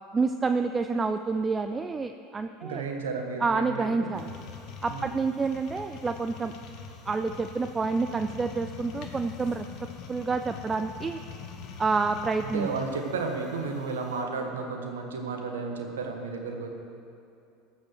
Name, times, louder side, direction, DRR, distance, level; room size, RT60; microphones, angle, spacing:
voice 1, 0.1-2.8 3.4-4.3 4.8-6.5 7.1-9.7 10.1-11.2 11.8-12.7, right 4 dB, 20° right, 9 dB, 0.4 m, -28 dB
voice 2, 2.6-4.2 4.9-5.2 12.4-16.7, right 4 dB, 90° right, 3 dB, 1.4 m, -33 dB
sound 1, 4.1-14.2, left 6 dB, 60° left, 1.4 m, -44 dB
13.5 x 6.2 x 6.5 m, 2.7 s
hypercardioid pair, 90°, 0 cm